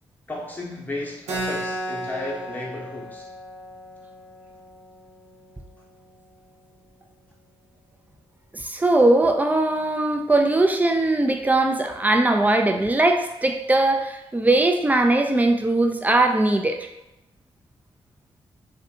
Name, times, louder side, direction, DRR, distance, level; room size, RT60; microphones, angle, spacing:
voice 1, 0.3-3.3, left 1 dB, 15° left, -3 dB, 0.8 m, -33 dB
Keyboard (musical), 1.3-6.4, right 1 dB, 85° right, 0.5 m, -35 dB
voice 2, 8.5-16.9, right 2 dB, 15° right, 4 dB, 0.4 m, -20 dB
2.4 x 2.2 x 2.8 m, 0.92 s
supercardioid pair, 45°, 12 cm